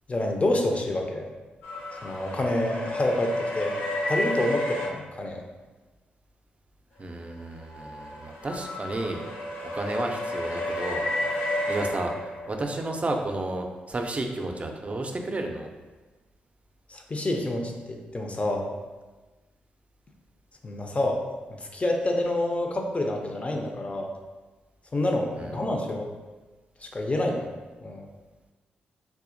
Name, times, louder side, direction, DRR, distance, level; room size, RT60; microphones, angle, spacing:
voice 1, 0.1-1.3 2.0-3.8 4.1-5.4 16.9-18.7 20.6-21.2 21.7-24.1 24.9-26.1 26.8-27.5 27.8-28.0, left 1 dB, 35° left, 2 dB, 0.6 m, -27 dB
sound 1, 1.6-4.9 7.3-12.8, left 1 dB, 80° left, 0.6 m, -32 dB
voice 2, 7.0-9.2 9.7-11.0 11.3-15.7 25.4-25.6, right 2 dB, 35° right, 3 dB, 0.5 m, -32 dB
3.6 x 2.7 x 2.6 m, 1.2 s
supercardioid pair, 45°, 4 cm